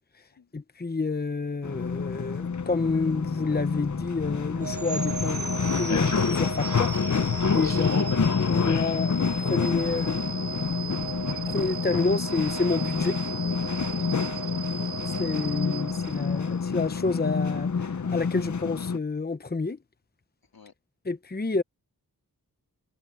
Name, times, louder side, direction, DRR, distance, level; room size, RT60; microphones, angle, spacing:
voice 1, 0.5-5.4 5.7-6.9 7.4-8.1 8.4-10.2 11.5-13.2 15.2-19.8 21.1-21.6, left 3 dB, 25° left, 0.9 m, -29 dB
sound 1, 1.6-19.0, left 5 dB, 55° left, 0.9 m, -28 dB
sound 2, 4.6-16.7, right 6 dB, 40° right, 1.9 m, -36 dB
voice 2, 13.7-15.0 20.5-20.7, left 5 dB, 80° left, 3.1 m, -54 dB
wide cardioid pair, 70°, 36 cm